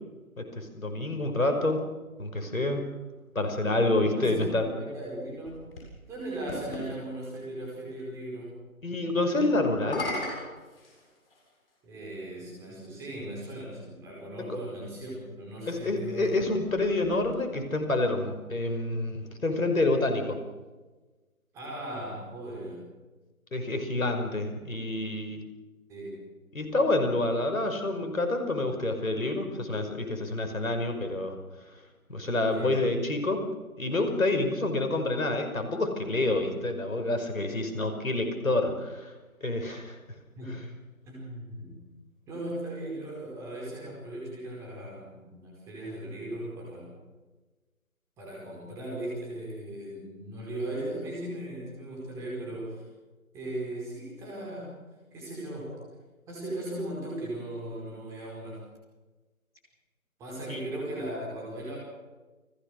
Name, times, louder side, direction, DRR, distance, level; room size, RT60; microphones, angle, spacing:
voice 1, 0.4-1.8 2.2-2.8 3.3-4.6 8.8-10.1 14.5-14.6 15.7-20.4 23.5-25.4 26.5-31.4 31.7-31.8 32.1-33.4 33.8-39.1 39.4-40.0 40.5-40.6 60.5-60.6, left 2 dB, 70° left, 6 dB, 5.6 m, -28 dB
voice 2, 4.1-5.6 6.1-8.6 11.8-16.3 21.5-22.8 25.9-26.2 32.5-32.8 40.4-40.7 41.0-41.8 42.3-46.9 48.2-52.8 53.3-54.8 55.1-55.7 56.3-58.6 60.2-61.8, right 1 dB, 5° right, -3 dB, 4.8 m, -38 dB
sound 1, 5.0-6.9 9.7-11.5 12.4-12.5 16.2-17.8, left 2 dB, 40° left, 7.9 m, -39 dB
30.0 x 18.0 x 6.6 m, 1.2 s
figure-of-eight pair, 160°, 43 cm